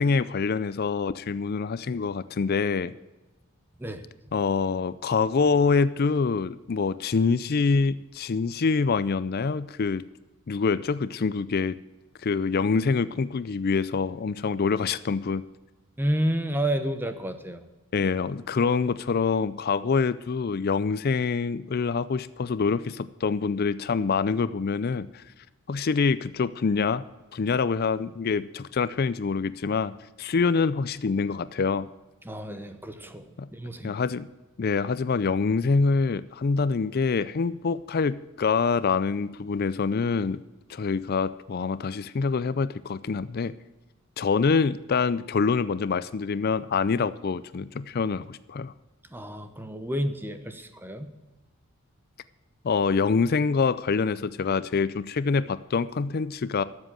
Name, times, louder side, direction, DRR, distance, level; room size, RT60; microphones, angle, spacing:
voice 1, 0.0-2.9 4.3-10.0 10.5-11.8 12.2-15.4 17.9-25.2 25.7-27.0 27.3-29.9 30.2-31.9 33.4-33.5 33.8-34.3 34.6-40.4 40.7-43.5 44.2-48.7 52.6-56.6, left 4 dB, 45° left, 15 dB, 0.4 m, -25 dB
voice 2, 16.0-17.6 32.2-34.0 49.1-51.1, equal, 10° right, 9 dB, 0.9 m, -30 dB
13.0 x 7.6 x 7.5 m, 1.1 s
head